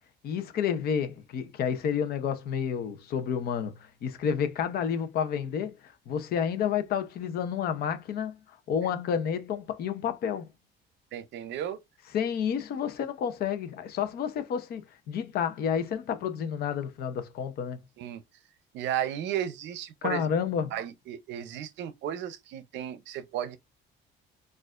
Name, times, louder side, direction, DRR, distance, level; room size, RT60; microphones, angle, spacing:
voice 1, 0.2-8.4 8.7-10.5 12.1-17.8 20.0-20.7, left 7 dB, 50° left, 0.7 m, -30 dB
voice 2, 11.1-11.8 18.0-18.2 18.7-20.3 20.7-23.6, right 10 dB, 65° right, 0.6 m, -34 dB
6.4 x 2.5 x 2.4 m
cardioid pair, 180°, 20 cm